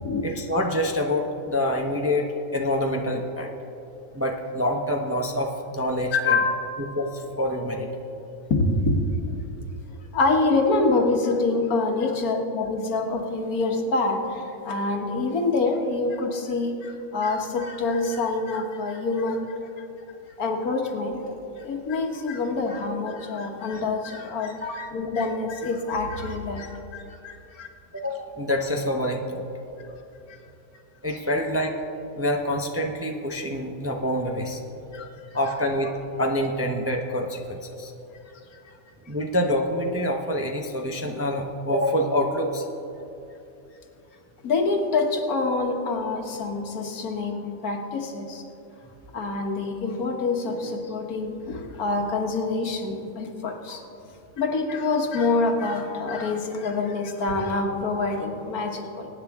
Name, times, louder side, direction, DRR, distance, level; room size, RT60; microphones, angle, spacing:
voice 1, 0.2-3.5 4.1-6.4 7.0-7.9 24.6-24.8 27.9-29.5 31.0-31.8 32.2-34.6 35.3-37.9 39.1-42.7, left 1 dB, 15° right, 2 dB, 0.5 m, -26 dB
voice 2, 6.1-6.7 8.5-9.1 10.1-19.8 20.4-27.7 29.8-29.9 30.3-30.4 34.9-35.1 44.4-48.4 49.1-53.9 54.4-59.1, left 3 dB, 85° left, 3 dB, 1.7 m, -26 dB
22.5 x 9.5 x 3.6 m, 2.9 s
omnidirectional pair, 1.5 m